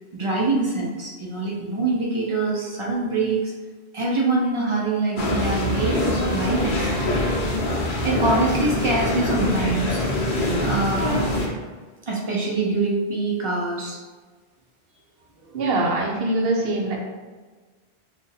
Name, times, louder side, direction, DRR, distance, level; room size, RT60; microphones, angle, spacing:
voice 1, 0.1-3.5 3.9-7.1 8.0-10.0 10.6-11.3 12.1-14.0, right 3 dB, 40° right, -3 dB, 0.4 m, -24 dB
sound 1, 5.2-11.5, left 1 dB, 55° left, 0.8 m, -24 dB
voice 2, 15.4-17.0, right 2 dB, 70° right, 0 dB, 0.9 m, -23 dB
2.6 x 2.5 x 3.9 m, 1.4 s
omnidirectional pair, 1.1 m